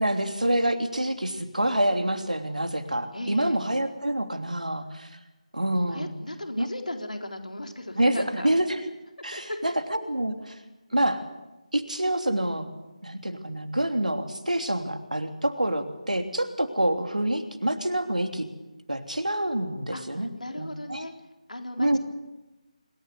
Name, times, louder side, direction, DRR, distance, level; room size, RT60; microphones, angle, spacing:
voice 1, 0.0-5.1 5.5-6.1 6.6-6.7 8.0-8.8 9.2-10.6 10.9-11.2 11.7-12.7 13.0-18.5 18.9-20.3 20.6-21.1 21.8-22.0, right 1 dB, 85° right, 6 dB, 3.1 m, -27 dB
voice 2, 3.1-3.6 5.9-8.5 9.3-9.6 19.9-21.1 21.5-22.0, left 1 dB, 80° left, 4 dB, 4.0 m, -36 dB
26.0 x 14.0 x 9.7 m, 1.1 s
figure-of-eight pair, 160°, 4 cm